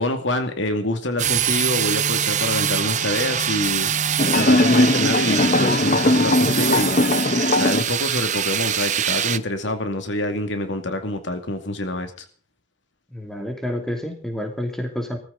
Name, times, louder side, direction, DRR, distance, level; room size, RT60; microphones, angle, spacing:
voice 1, 0.0-3.9 4.3-7.0 7.5-12.1, left 1 dB, 75° left, 6 dB, 2.4 m, -26 dB
sound 1, 1.2-9.4, right 9 dB, 40° right, 0.8 m, -24 dB
sound 2, 4.2-7.8, left 2 dB, 40° left, 0.9 m, -19 dB
voice 2, 13.1-15.2, left 1 dB, 5° left, 3 dB, 2.9 m, -29 dB
20.0 x 14.5 x 4.0 m, 0.41 s
head